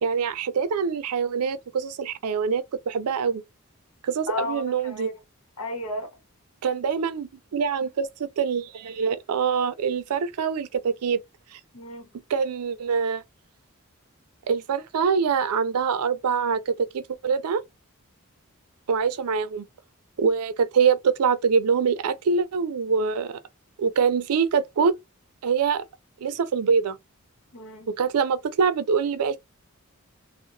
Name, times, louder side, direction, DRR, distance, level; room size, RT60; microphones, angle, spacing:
voice 1, 0.0-3.4 4.0-5.1 6.6-11.2 11.5-11.6 12.3-13.2 14.5-17.6 18.9-19.6 20.2-23.4 23.8-25.0 25.4-25.8 26.2-27.0 27.9-29.4, right 6 dB, 90° right, 0.4 m, -24 dB
voice 2, 4.3-5.2 5.6-6.1 11.7-12.1 27.5-27.9, left 2 dB, 85° left, 0.9 m, -33 dB
2.8 x 2.1 x 2.6 m
head